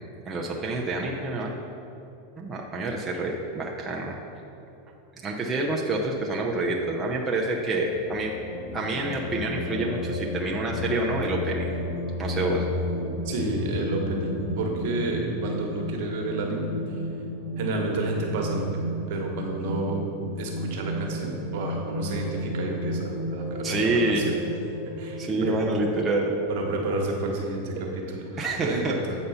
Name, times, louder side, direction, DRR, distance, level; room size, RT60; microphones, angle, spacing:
voice 1, 0.3-1.6 2.4-4.2 5.2-8.3 8.7-11.8 12.2-12.7 23.6-24.3 25.2-26.3 28.4-28.9, right 2 dB, 20° right, -2 dB, 0.7 m, -27 dB
sound 1, 7.8-27.0, left 1 dB, 60° left, 1.3 m, -33 dB
voice 2, 13.2-17.0 17.6-20.0 20.4-24.4 25.0-25.6 26.5-29.2, right 2 dB, 65° right, 1 dB, 1.3 m, -30 dB
7.9 x 4.2 x 5.6 m, 2.7 s
hypercardioid pair, 120°, 0 cm